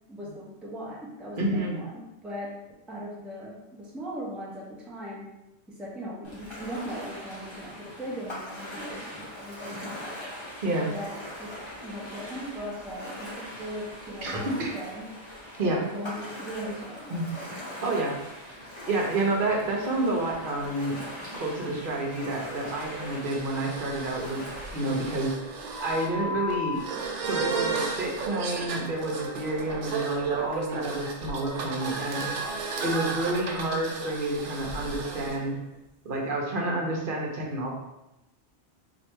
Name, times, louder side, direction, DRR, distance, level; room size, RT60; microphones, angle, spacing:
voice 1, 0.1-2.5 2.9-5.3 5.7-10.2 10.9-15.1 15.6-17.1, equal, ahead, -4 dB, 0.6 m, -39 dB
voice 2, 1.4-1.8 10.6-10.9 14.2-14.7 15.6-15.8 17.1-17.2 17.8-18.5 18.8-24.4 24.7-26.8 27.2-32.3 32.8-35.6 36.0-37.7, right 2 dB, 50° right, -1 dB, 1.0 m, -29 dB
Ocean, 6.2-25.3, left 1 dB, 25° left, 1.2 m, -41 dB
sound 1, 21.6-35.4, right 4 dB, 85° right, 1.0 m, -34 dB
3.2 x 2.6 x 4.5 m, 0.92 s
omnidirectional pair, 1.2 m